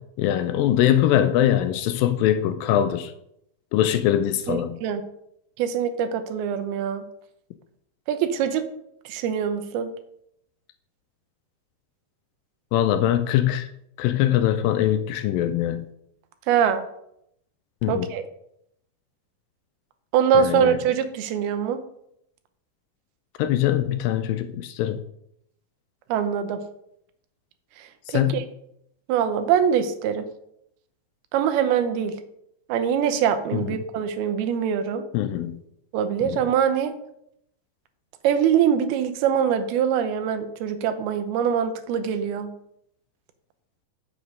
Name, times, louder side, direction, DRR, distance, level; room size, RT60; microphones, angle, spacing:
voice 1, 0.2-3.1 3.7-4.8 12.7-13.6 14.0-15.9 17.8-18.1 20.3-20.8 23.4-25.0 28.1-28.4 33.5-33.8 35.1-35.6 36.2-36.4, left 11 dB, 80° left, 9 dB, 2.1 m, -22 dB
voice 2, 4.5-5.0 5.6-7.0 8.1-8.6 9.1-9.9 16.5-16.8 17.9-18.2 20.1-21.8 26.1-26.6 28.1-28.4 29.1-30.3 31.3-32.1 32.7-35.0 35.9-36.9 38.2-42.5, right 8 dB, 85° right, 9 dB, 2.7 m, -23 dB
7.2 x 6.5 x 5.1 m, 0.76 s
omnidirectional pair, 4.3 m